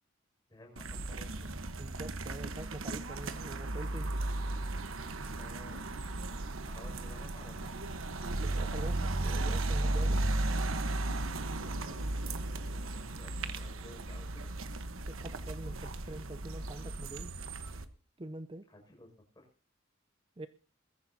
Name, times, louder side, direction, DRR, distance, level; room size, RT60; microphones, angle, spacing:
voice 1, 0.5-1.5 5.3-7.8 11.6-12.2 12.5-14.5 18.7-19.5, left 1 dB, 20° left, 2 dB, 6.1 m, -55 dB
sound 1, 0.8-17.8, right 2 dB, 85° right, 1.2 m, -35 dB
voice 2, 1.8-4.1 8.4-10.2 15.1-17.3 18.2-18.6 20.4-20.5, right 2 dB, 25° right, 11 dB, 0.6 m, -45 dB
21.0 x 14.5 x 2.8 m, 0.42 s
head